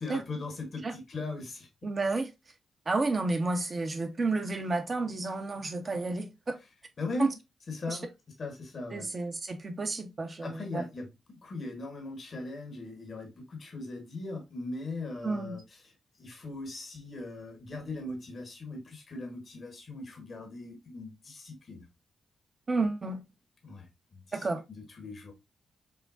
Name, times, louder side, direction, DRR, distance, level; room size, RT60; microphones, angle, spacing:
voice 1, 0.0-1.7 7.0-7.4 7.7-8.1 8.4-9.1 10.4-15.9 16.2-21.9 23.6-25.3, left 2 dB, 55° left, 1.2 m, -39 dB
voice 2, 1.8-2.3 2.9-6.6 7.2-7.3 7.9-8.0 8.9-10.8 15.2-15.6 22.7-23.2 24.3-24.6, right 3 dB, 45° right, 0.9 m, -31 dB
5.9 x 2.2 x 2.5 m
hypercardioid pair, 40°, 0 cm